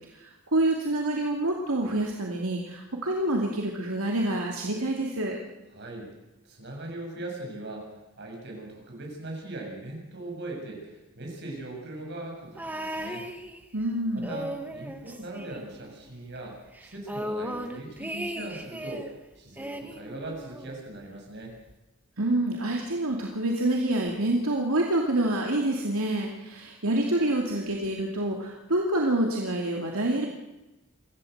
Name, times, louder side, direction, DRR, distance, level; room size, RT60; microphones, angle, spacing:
voice 1, 0.1-5.4 13.7-14.3 22.2-30.3, right 1 dB, 75° right, 0 dB, 2.5 m, -27 dB
voice 2, 5.7-6.1 6.4-13.3 14.1-19.1 19.4-21.6, right 2 dB, 50° right, 0 dB, 7.1 m, -40 dB
sound 1, 12.6-13.9 14.2-16.1 16.4-16.5 16.7-19.1 19.6-20.8 21.7-21.8, right 1 dB, 10° right, 1.5 m, -37 dB
25.5 x 15.0 x 8.0 m, 1.0 s
head